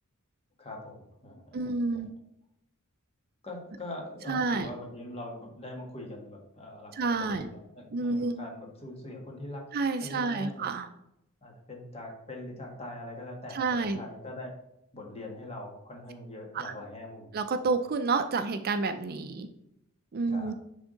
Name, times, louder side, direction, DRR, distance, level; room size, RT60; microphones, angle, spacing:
voice 1, 0.6-2.0 3.4-9.7 10.0-10.6 11.4-14.6 14.9-17.3 20.3-20.5, left 1 dB, 30° left, 1 dB, 1.5 m, -42 dB
voice 2, 1.5-2.1 4.3-4.7 6.9-7.5 7.9-8.3 9.7-10.9 13.5-14.0 16.5-16.7 17.3-19.5 20.1-20.5, right 3 dB, 45° right, 9 dB, 0.5 m, -29 dB
10.0 x 3.6 x 3.8 m, 0.81 s
head